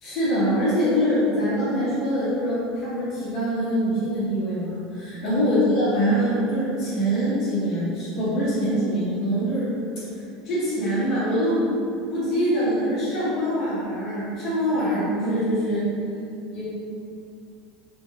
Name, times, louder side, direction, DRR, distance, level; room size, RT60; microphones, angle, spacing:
voice 1, 0.0-9.7 10.4-11.6 12.1-15.8 16.5-16.6, equal, 35° left, -10 dB, 1.2 m, -24 dB
3.8 x 3.7 x 2.4 m, 2.6 s
supercardioid pair, 175°, 0 cm